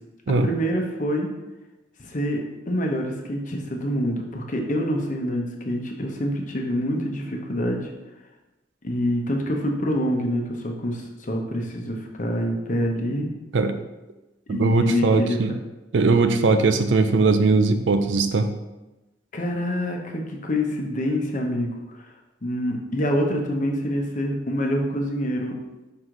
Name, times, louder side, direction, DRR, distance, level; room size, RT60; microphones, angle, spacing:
voice 1, 0.4-1.3 2.0-2.4 2.7-7.9 8.8-13.3 14.5-15.4 19.3-22.1 22.4-25.5, equal, 45° left, 1 dB, 0.9 m, -26 dB
voice 2, 14.5-15.6 15.9-18.5, right 3 dB, 75° right, 9 dB, 0.5 m, -20 dB
5.7 x 4.7 x 3.8 m, 1.0 s
head